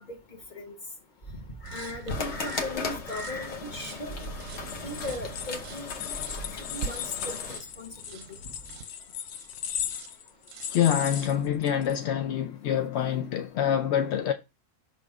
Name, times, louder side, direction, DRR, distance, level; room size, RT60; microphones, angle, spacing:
voice 1, 1.6-4.3 4.8-6.0 6.7-7.3 7.8-8.2, left 2 dB, 30° left, 1.3 m, -37 dB
sound 1, 1.6-9.5 9.9-10.2 10.5-11.4, right 7 dB, 65° right, 0.9 m, -44 dB
sound 2, 2.1-7.6, left 3 dB, 50° left, 1.2 m, -36 dB
sound 3, 4.5-12.0, left 9 dB, 85° left, 1.2 m, -37 dB
voice 2, 10.7-14.3, left 9 dB, 65° left, 0.6 m, -26 dB
5.8 x 3.5 x 4.8 m
omnidirectional pair, 1.6 m